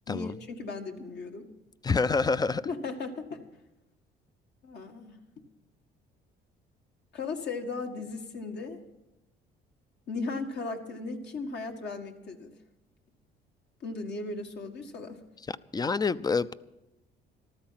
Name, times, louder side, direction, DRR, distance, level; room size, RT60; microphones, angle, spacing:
voice 1, 0.1-1.5 2.6-3.4 4.6-5.2 7.1-8.8 10.1-12.5 13.8-15.2, left 3 dB, 60° left, 1.9 m, -36 dB
voice 2, 1.8-2.6 15.5-16.5, left 4 dB, 20° left, 0.5 m, -27 dB
14.5 x 13.0 x 5.8 m
supercardioid pair, 80°, 20 cm